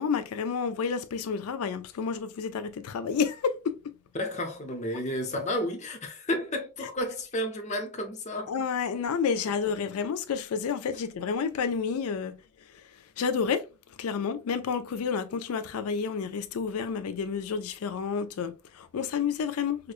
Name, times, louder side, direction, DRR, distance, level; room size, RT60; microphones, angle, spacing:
voice 1, 0.0-3.9 8.5-12.4 13.2-13.6 14.0-19.9, left 6 dB, 90° left, 0.4 m, -30 dB
voice 2, 4.1-8.5 9.4-9.5, left 1 dB, 35° left, 0.7 m, -32 dB
4.9 x 2.1 x 2.4 m
head